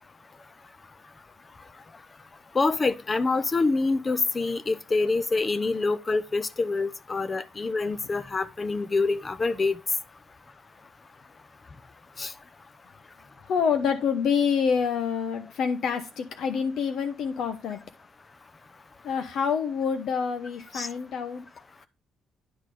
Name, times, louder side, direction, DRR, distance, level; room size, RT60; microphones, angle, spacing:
voice 1, 2.5-9.8 12.2-12.3 20.7-20.9, left 3 dB, 30° left, 0.7 m, -26 dB
voice 2, 13.5-17.8 19.0-21.4, left 6 dB, 70° left, 0.9 m, -27 dB
10.5 x 4.0 x 4.9 m
cardioid pair, 90°, 0 cm